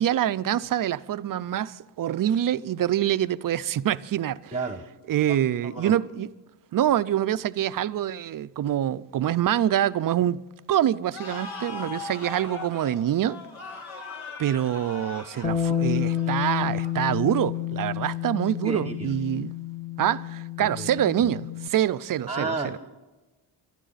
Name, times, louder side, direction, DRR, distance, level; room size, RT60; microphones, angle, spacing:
voice 1, 0.0-4.5 5.1-6.3 6.7-10.4 10.7-13.4 14.4-19.5 20.0-22.8, right 11 dB, 45° right, 0.5 m, -25 dB
voice 2, 4.5-4.8 5.6-5.9 18.6-19.1 20.6-20.9 22.3-22.8, right 3 dB, 10° right, 1.0 m, -31 dB
sound 1, 11.1-17.6, left 4 dB, 70° left, 2.5 m, -40 dB
Bass guitar, 15.4-21.7, left 10 dB, 15° left, 0.6 m, -30 dB
24.5 x 12.0 x 4.0 m
cardioid pair, 110°, 49 cm